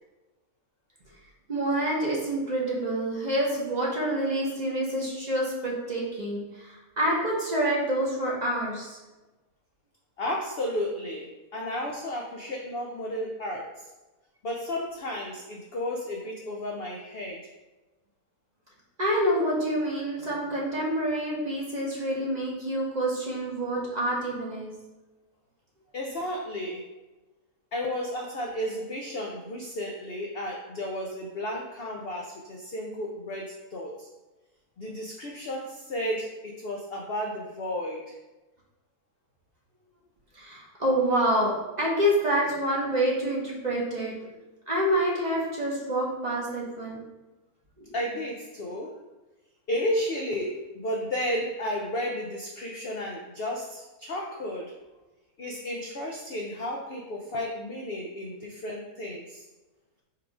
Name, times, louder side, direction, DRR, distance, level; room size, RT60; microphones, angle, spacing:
voice 1, 1.5-9.0 19.0-24.7 40.3-44.2 44.7-47.0 47.8-47.9, right 1 dB, 35° right, -4 dB, 0.7 m, -27 dB
voice 2, 10.2-13.9 14.4-17.5 25.9-26.9 27.7-34.1 34.8-38.1 47.9-49.0 49.7-54.7 55.4-59.4, left 1 dB, 80° left, 0 dB, 0.5 m, -33 dB
4.5 x 2.4 x 4.8 m, 1.1 s
omnidirectional pair, 1.6 m